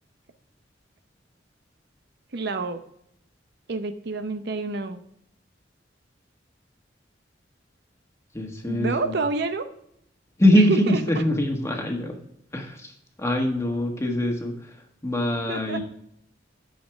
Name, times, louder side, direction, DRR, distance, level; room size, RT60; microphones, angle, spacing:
voice 1, 2.3-2.8 3.7-5.0 8.7-9.7 10.5-11.0 15.5-15.8, right 4 dB, 60° right, 9 dB, 0.7 m, -28 dB
voice 2, 8.3-9.1 10.4-12.2 12.5-12.9 13.2-14.5 15.0-15.8, left 1 dB, 15° left, 2 dB, 1.5 m, -23 dB
9.3 x 6.5 x 3.5 m, 0.73 s
head